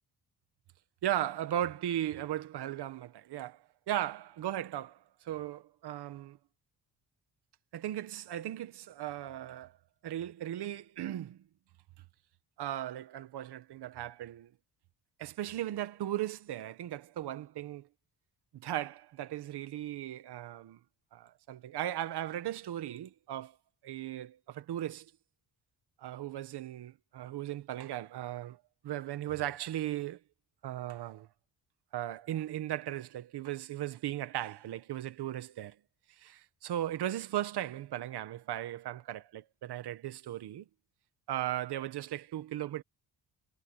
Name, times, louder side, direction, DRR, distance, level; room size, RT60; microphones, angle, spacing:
voice 1, 1.0-6.4 7.7-9.8 10.0-11.4 12.6-14.5 15.2-17.9 18.5-20.8 21.1-23.6 23.8-25.1 26.0-30.2 30.6-31.3 31.9-35.8 36.2-40.7 41.3-42.8, right 12 dB, 80° right, 1.4 m, -37 dB
cardioid pair, 130°, 39 cm